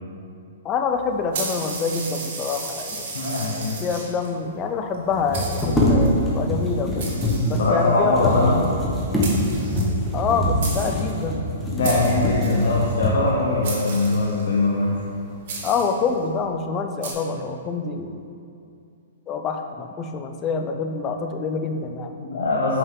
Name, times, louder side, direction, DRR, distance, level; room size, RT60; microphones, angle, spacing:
voice 1, 0.6-3.1 3.8-7.1 7.5-8.5 10.1-11.4 15.6-18.2 19.3-22.2, left 5 dB, 25° left, 5 dB, 0.5 m, -26 dB
sound 1, 1.3-4.3 4.9-5.0 5.3-6.1 7.0-8.0 8.9-9.0 9.2-10.3 10.6-11.1 11.8-12.7 13.6-14.5 15.5-16.1 17.0-17.1, right 3 dB, 55° right, 1.5 m, -34 dB
voice 2, 3.1-3.8 7.6-8.7 11.7-14.9 22.2-22.8, left 2 dB, 70° left, -4 dB, 0.9 m, -21 dB
sound 2, 3.6-3.7 3.9-4.0 5.1-13.4 14.1-14.2 14.7-15.3 15.7-16.2, equal, 5° left, 1.1 m, -24 dB
5.7 x 5.4 x 3.7 m, 2.5 s
hypercardioid pair, 130°, 0 cm